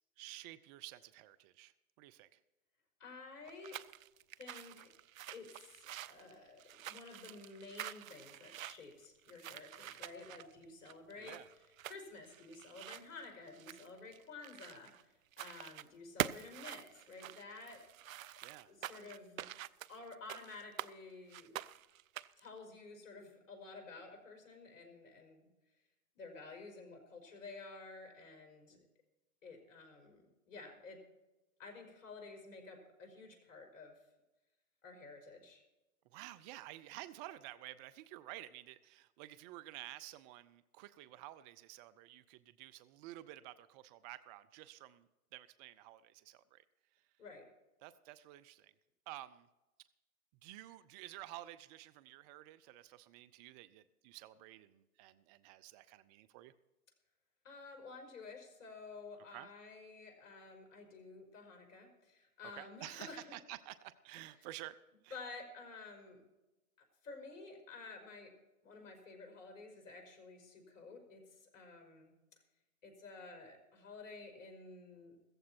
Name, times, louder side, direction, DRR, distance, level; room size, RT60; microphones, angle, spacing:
voice 1, 0.2-1.7 2.0-2.4 11.2-11.5 18.4-18.7 36.1-46.6 47.8-48.7 49.1-49.5 50.4-56.5 59.3-59.5 62.5-64.8 65.0-65.2, right 15 dB, 30° right, 15 dB, 0.5 m, -51 dB
voice 2, 3.0-3.8 4.4-4.9 5.3-11.4 11.9-17.8 18.7-19.5 19.9-21.6 22.4-25.5 26.2-28.9 29.4-31.0 31.6-34.0 34.8-35.6 47.2-47.4 57.4-63.3 65.1-66.2 67.0-68.3 68.6-72.1 72.8-75.2, left 3 dB, 60° left, 3 dB, 5.2 m, -52 dB
sound 1, 3.4-15.0 15.3-15.9 16.2-20.9 21.3-22.5, right 12 dB, 65° right, 0.7 m, -46 dB
15.5 x 14.5 x 4.4 m, 1.0 s
hypercardioid pair, 115°, 43 cm